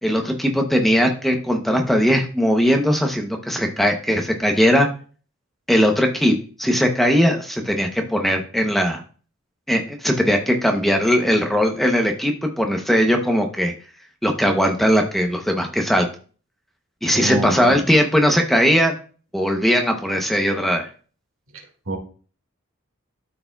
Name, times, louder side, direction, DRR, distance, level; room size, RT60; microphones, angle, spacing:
voice 1, 0.0-4.9 5.7-9.0 9.7-13.7 14.2-16.1 17.0-18.9 19.3-20.9, equal, ahead, 3 dB, 0.7 m, -19 dB
voice 2, 17.1-17.8 21.9-22.0, right 1 dB, 85° right, 2 dB, 2.0 m, -26 dB
12.5 x 4.7 x 2.3 m, 0.40 s
head